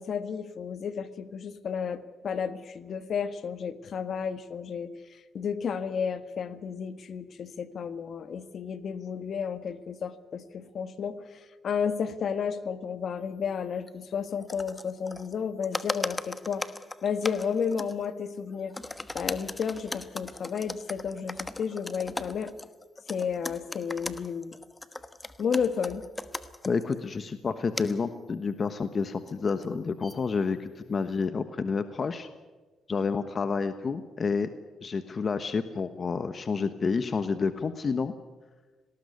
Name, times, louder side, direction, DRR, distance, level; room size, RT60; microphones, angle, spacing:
voice 1, 0.0-4.9 5.3-11.2 11.6-16.6 17.0-18.7 19.1-22.5 23.1-24.5 25.4-26.0, left 6 dB, 55° left, 11 dB, 1.5 m, -32 dB
sound 1, 13.9-14.0 14.3-15.3 15.6-18.1 18.5-26.9 27.8-28.0 29.3-30.3, left 2 dB, 15° left, 1.2 m, -38 dB
voice 2, 26.6-32.3 32.9-34.5 34.8-38.1, left 5 dB, 40° left, 10 dB, 1.2 m, -29 dB
19.0 x 19.0 x 9.6 m, 1.3 s
cardioid pair, 90°, 0 cm